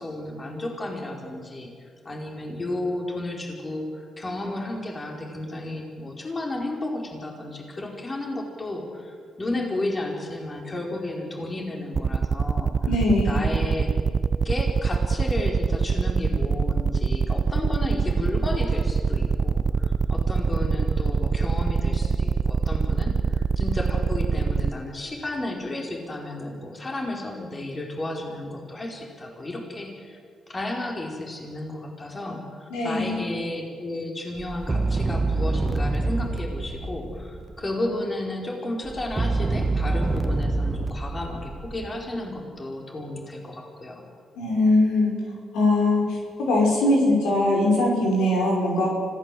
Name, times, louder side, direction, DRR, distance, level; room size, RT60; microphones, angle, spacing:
voice 1, 0.0-1.7 2.0-12.7 13.2-13.9 14.4-30.2 30.5-44.0, left 1 dB, 30° left, 1 dB, 4.7 m, -33 dB
sound 1, 11.9-24.7, right 5 dB, 45° right, 0.6 m, -24 dB
voice 2, 12.9-13.4 32.7-33.2 44.4-45.1 45.5-48.9, left 2 dB, 90° left, -1 dB, 5.5 m, -21 dB
sound 2, 34.4-37.6 38.9-42.2, right 2 dB, 25° right, 1.3 m, -26 dB
25.0 x 16.5 x 7.8 m, 2.2 s
cardioid pair, 70°, 0 cm